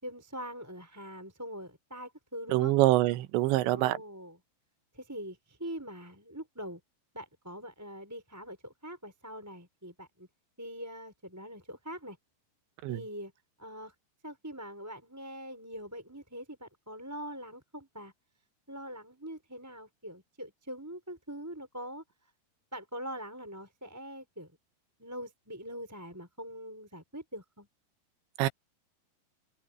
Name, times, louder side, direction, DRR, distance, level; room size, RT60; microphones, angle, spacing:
voice 1, 0.0-2.7 3.5-4.4 4.9-6.8 7.1-10.3 10.6-12.2 12.9-13.3 13.6-13.9 14.2-18.1 18.7-22.0 22.7-24.5 25.0-27.7, equal, 5° right, 4.9 m, -43 dB
voice 2, 2.5-4.0 12.8-13.0 28.4-28.5, right 16 dB, 80° right, 3.1 m, -25 dB
open air
omnidirectional pair, 5.3 m